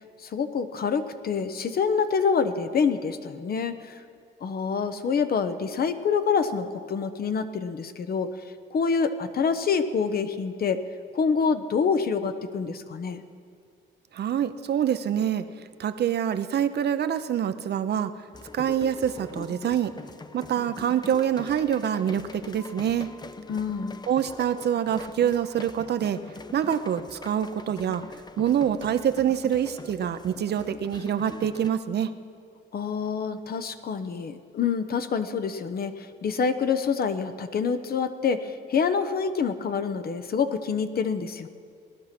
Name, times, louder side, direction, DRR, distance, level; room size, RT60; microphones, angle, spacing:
voice 1, 0.2-4.0 4.4-8.3 8.7-10.8 11.1-13.2 23.5-24.0 32.7-41.5, left 6 dB, 50° left, 10 dB, 0.9 m, -26 dB
voice 2, 14.1-15.4 15.8-18.1 18.5-19.9 20.3-23.1 24.1-26.2 26.5-28.0 28.4-32.1, right 9 dB, 55° right, 11 dB, 0.7 m, -26 dB
sound 1, 18.3-31.7, left 3 dB, 20° left, 0.6 m, -43 dB
18.0 x 11.5 x 6.0 m, 2.3 s
cardioid pair, 90°, 20 cm